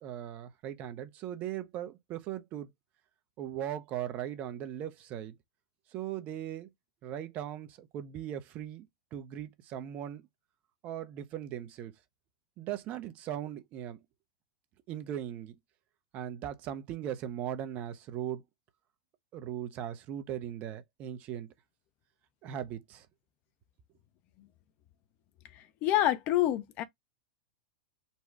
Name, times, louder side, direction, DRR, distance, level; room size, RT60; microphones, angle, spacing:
voice 1, 0.0-2.7 3.4-5.3 5.9-6.7 7.0-10.2 10.8-11.9 12.6-14.0 14.9-15.6 16.1-18.4 19.3-21.5 22.4-23.1, right 11 dB, 40° right, 0.8 m, -39 dB
voice 2, 25.5-26.8, left 13 dB, 45° left, 0.7 m, -28 dB
4.1 x 2.4 x 4.6 m
hypercardioid pair, 100°, 4 cm